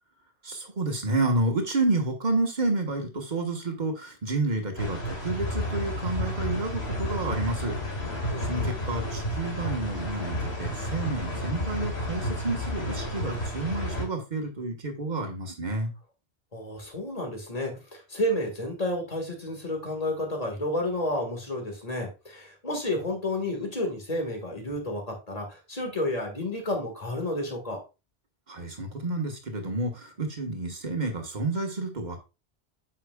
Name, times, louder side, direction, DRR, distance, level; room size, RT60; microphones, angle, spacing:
voice 1, 0.4-7.8 8.4-15.9 28.5-32.2, right 2 dB, 45° right, 3 dB, 1.4 m, -30 dB
sound 1, 4.8-14.0, left 1 dB, 75° left, 2.3 m, -31 dB
voice 2, 8.3-8.7 16.5-27.8, left 1 dB, 35° left, 2 dB, 1.8 m, -31 dB
8.3 x 5.6 x 2.3 m, 0.28 s
omnidirectional pair, 1.1 m